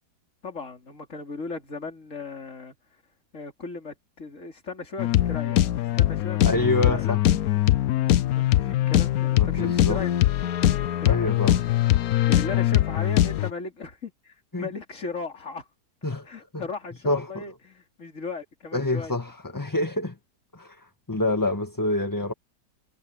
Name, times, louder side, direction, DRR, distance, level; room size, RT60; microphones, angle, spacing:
voice 1, 0.4-2.8 3.3-7.2 7.4-7.6 8.3-10.1 11.0-11.5 12.2-15.7 16.3-19.1 19.6-19.7, left 4 dB, 45° left, 3.8 m, -37 dB
sound 1, 5.0-13.5, left 13 dB, 65° left, 1.0 m, -22 dB
voice 2, 6.4-7.2 9.4-10.0 11.0-11.6 14.5-14.7 16.0-16.3 16.5-16.6 17.0-17.4 18.7-20.2 20.5-22.3, left 2 dB, 10° left, 1.5 m, -27 dB
omnidirectional pair, 1.8 m